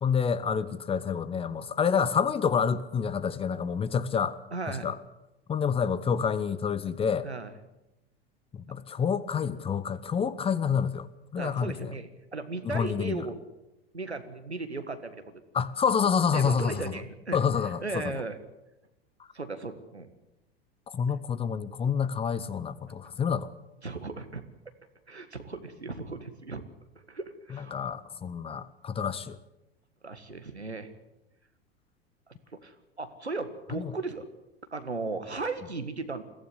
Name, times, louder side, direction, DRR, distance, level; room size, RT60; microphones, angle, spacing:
voice 1, 0.0-4.4 4.7-5.0 5.5-7.3 8.5-11.1 11.3-11.9 12.6-13.2 15.5-16.8 17.3-18.1 20.9-23.5 27.7-29.4 33.8-33.9, left 6 dB, 15° left, 16 dB, 0.9 m, -28 dB
voice 2, 4.5-4.9 7.2-7.5 11.4-13.4 13.9-15.4 16.3-17.4 17.6-18.4 19.3-20.1 23.8-24.4 25.1-26.6 27.1-27.8 29.1-29.2 30.0-30.9 32.5-34.2 34.7-36.2, right 3 dB, 85° right, 9 dB, 1.7 m, -36 dB
22.0 x 15.5 x 8.1 m, 0.96 s
figure-of-eight pair, 85°, 32 cm